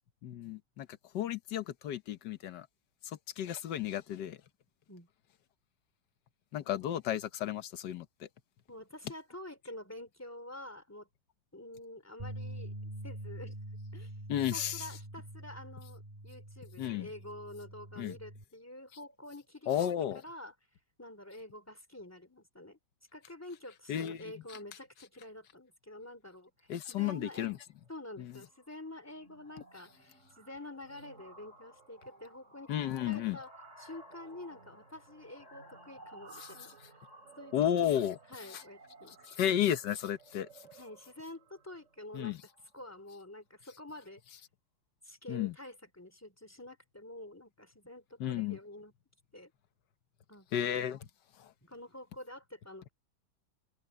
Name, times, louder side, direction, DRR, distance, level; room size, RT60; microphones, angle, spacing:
voice 1, 0.2-0.9 1.1-2.7 3.0-4.4 6.5-8.3 14.3-14.9 16.8-17.1 18.0-18.2 19.7-20.2 23.9-24.6 26.7-27.6 28.2-28.3 32.7-33.4 36.4-36.5 37.5-38.2 38.5-38.6 39.2-40.5 42.1-42.4 45.3-45.5 48.2-48.6 50.5-51.1 51.4-51.5, left 10 dB, 90° left, 1.6 m, -33 dB
voice 2, 8.7-11.1 11.5-12.7 13.0-13.6 13.9-14.1 14.5-20.5 21.0-22.8 23.1-27.6 27.9-33.5 33.8-37.0 37.4-39.2 40.7-42.3 42.7-44.4 45.0-48.9 49.3-49.5 50.3-50.5 51.6-52.9, left 1 dB, 10° left, 3.1 m, -48 dB
sound 1, 12.2-18.4, right 1 dB, 20° right, 3.3 m, -45 dB
sound 2, 27.2-27.5 27.8-28.1 28.4-43.2, right 2 dB, 45° right, 3.8 m, -57 dB
omnidirectional pair, 1.8 m